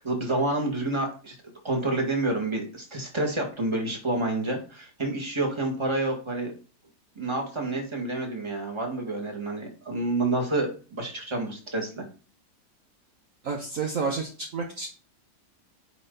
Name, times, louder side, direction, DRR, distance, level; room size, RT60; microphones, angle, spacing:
voice 1, 0.0-1.4 1.6-6.5 7.2-12.1, right 2 dB, 15° right, 0 dB, 1.9 m, -28 dB
voice 2, 13.4-14.9, right 4 dB, 55° right, 0 dB, 1.3 m, -30 dB
9.6 x 4.2 x 4.0 m, 0.38 s
omnidirectional pair, 1.8 m